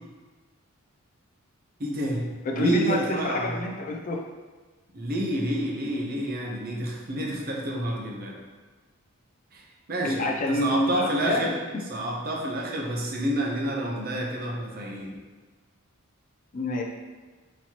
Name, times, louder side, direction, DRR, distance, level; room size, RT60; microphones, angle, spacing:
voice 1, 1.8-2.2 2.5-3.5 4.9-8.4 9.5-9.6 9.9-11.5 11.9-15.1, right 1 dB, 45° right, -1 dB, 0.7 m, -29 dB
voice 2, 2.4-4.2 10.0-11.8 16.5-16.8, left 1 dB, 40° left, 1 dB, 0.4 m, -28 dB
4.4 x 4.1 x 2.9 m, 1.3 s
head